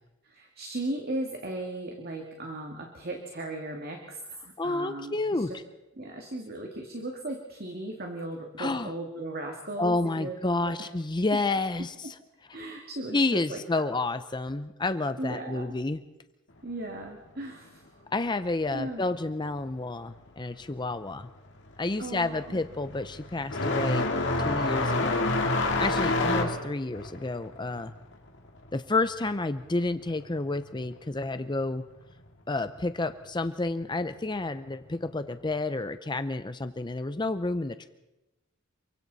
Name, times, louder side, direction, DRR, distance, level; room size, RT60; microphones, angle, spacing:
voice 1, 0.2-5.6 6.0-10.4 10.6-10.9 11.3-11.4 12.5-13.9 15.2-15.7 16.6-18.0 18.7-19.0 22.0-22.6, right 1 dB, 50° right, 2 dB, 2.2 m, -37 dB
voice 2, 4.6-5.5 8.6-8.9 9.8-12.1 13.1-16.0 18.1-21.3 21.8-24.1 24.4-25.3 25.8-27.9 28.7-31.8 32.5-37.9, left 2 dB, 20° left, 10 dB, 0.6 m, -30 dB
sound 1, 20.9-21.2 21.6-29.9 30.2-31.2 32.2-32.3 33.1-33.2 34.9-35.1, left 2 dB, 60° left, 2.2 m, -28 dB
28.0 x 24.0 x 4.1 m, 1.0 s
head